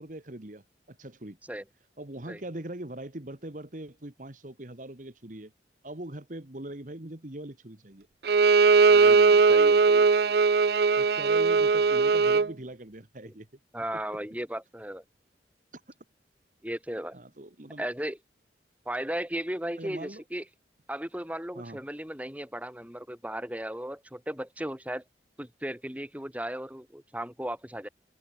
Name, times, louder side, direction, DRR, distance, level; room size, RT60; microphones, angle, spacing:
voice 1, 0.0-1.4 2.0-5.5 5.8-8.1 11.0-13.5 15.7-15.8 17.1-17.9 19.8-20.2 21.5-21.8, right 1 dB, 45° right, 1.6 m, -41 dB
Bowed string instrument, 8.3-12.5, right 4 dB, 60° right, 0.5 m, -20 dB
voice 2, 8.9-10.1 13.3-13.4 13.7-15.0 16.6-17.2 17.8-18.2 18.8-20.4 20.9-25.0 25.4-27.9, right 1 dB, 10° right, 3.3 m, -36 dB
head